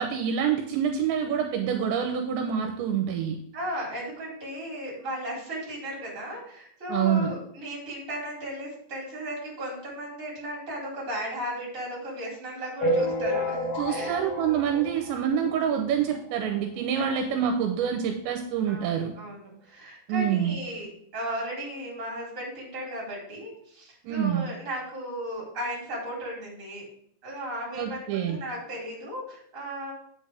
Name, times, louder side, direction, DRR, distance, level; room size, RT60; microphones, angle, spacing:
voice 1, 0.0-3.4 6.9-7.3 13.8-19.1 20.1-20.6 24.0-24.5 27.8-28.4, right 8 dB, 80° right, 3 dB, 2.9 m, -26 dB
voice 2, 3.5-14.2 17.0-17.3 18.7-20.9 21.1-26.8 27.2-29.9, equal, 20° right, -4 dB, 3.5 m, -36 dB
sound 1, 12.8-15.7 16.1-16.2 16.4-16.6 16.9-17.0 17.8-17.9 18.4-18.5, equal, 70° left, 4.6 m, -29 dB
8.8 x 7.8 x 3.4 m, 0.68 s
omnidirectional pair, 5.4 m